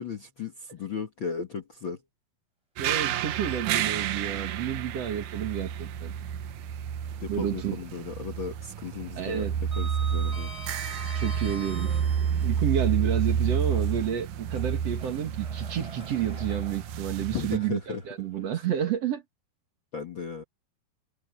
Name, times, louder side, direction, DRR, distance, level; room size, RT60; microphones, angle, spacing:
voice 1, 0.0-2.0 7.2-9.4 9.8-10.5 17.3-18.0 19.9-20.4, left 5 dB, 75° left, 1.1 m, -35 dB
voice 2, 2.8-6.1 7.3-7.8 9.2-9.6 11.1-12.0 12.3-19.2, right 9 dB, 50° right, 2.3 m, -30 dB
sound 1, 2.8-17.6, right 8 dB, 70° right, 2.1 m, -30 dB
Sliding door, 3.4-4.4 4.7-4.9 6.6-7.6 7.9-8.3 8.5-12.6 13.3-18.5, right 1 dB, 10° right, 5.3 m, -46 dB
omnidirectional pair, 4.7 m